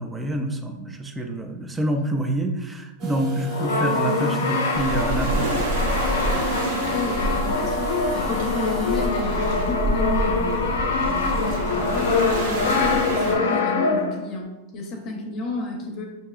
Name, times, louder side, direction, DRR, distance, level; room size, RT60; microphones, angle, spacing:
voice 1, 0.0-5.7, right 1 dB, 10° right, 4 dB, 0.4 m, -27 dB
sound 1, 3.0-9.1, right 2 dB, 35° right, 0.8 m, -34 dB
Brass instrument, 3.5-14.3, left 4 dB, 85° left, 0.5 m, -24 dB
Waves surf, 4.7-13.3, right 1 dB, 80° right, 0.9 m, -28 dB
voice 2, 6.5-16.0, left 2 dB, 40° left, 0 dB, 0.7 m, -32 dB
4.5 x 2.7 x 2.4 m, 1.1 s
supercardioid pair, 140°, 0 cm